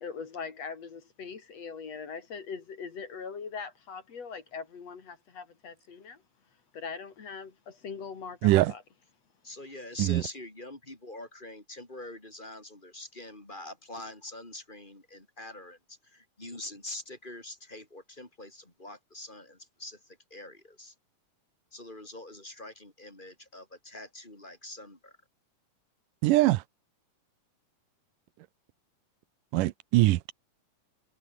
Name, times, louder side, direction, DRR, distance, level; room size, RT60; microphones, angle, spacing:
voice 1, 0.0-6.2 6.7-8.8, left 5 dB, 55° left, 3.6 m, -41 dB
voice 2, 9.4-20.9 21.7-25.2, left 1 dB, 15° left, 4.6 m, -44 dB
voice 3, 26.2-26.6 29.5-30.3, right 18 dB, 90° right, 2.3 m, -22 dB
omnidirectional pair, 3.7 m